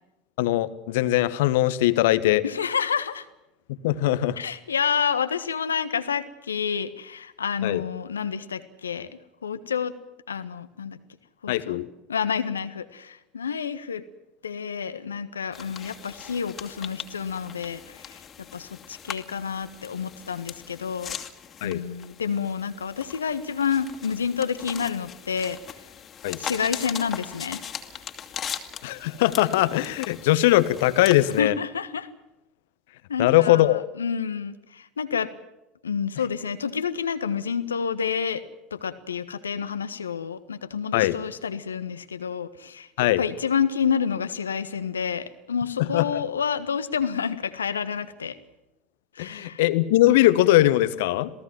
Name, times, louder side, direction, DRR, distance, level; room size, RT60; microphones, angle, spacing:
voice 1, 0.4-2.4 3.7-4.4 7.6-7.8 11.5-11.9 21.6-21.8 26.2-26.4 28.8-31.5 33.2-33.8 40.9-41.2 43.0-43.2 45.8-46.2 49.2-51.3, left 15 dB, 65° left, 15 dB, 1.3 m, -21 dB
voice 2, 2.4-3.2 4.4-9.1 9.4-9.9 10.3-11.0 11.4-11.8 12.1-14.0 14.4-18.2 18.5-21.1 21.6-25.6 26.4-27.6 31.3-32.1 33.1-35.3 35.8-38.4 38.7-48.3 49.1-49.6, left 7 dB, 80° left, 12 dB, 1.5 m, -29 dB
sound 1, 15.5-31.4, left 8 dB, 35° left, 2.7 m, -40 dB
27.5 x 18.0 x 7.5 m, 0.95 s
figure-of-eight pair, 70°, 0 cm